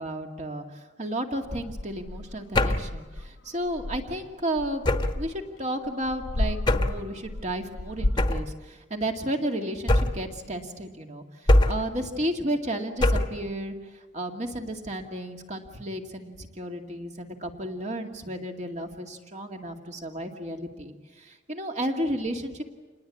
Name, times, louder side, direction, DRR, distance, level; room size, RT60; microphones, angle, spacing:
voice 1, 0.0-4.8 5.1-13.7 14.1-22.6, right 1 dB, 35° right, 3 dB, 2.3 m, -33 dB
sound 1, 1.4-4.9 5.8-8.2, left 1 dB, 80° left, 0.9 m, -33 dB
sound 2, 2.5-3.0 4.8-5.3 6.7-7.0 8.2-8.5 9.9-10.3 11.5-12.0 13.0-13.4, left 1 dB, 25° left, 1.2 m, -22 dB
28.0 x 20.0 x 8.5 m, 1.3 s
head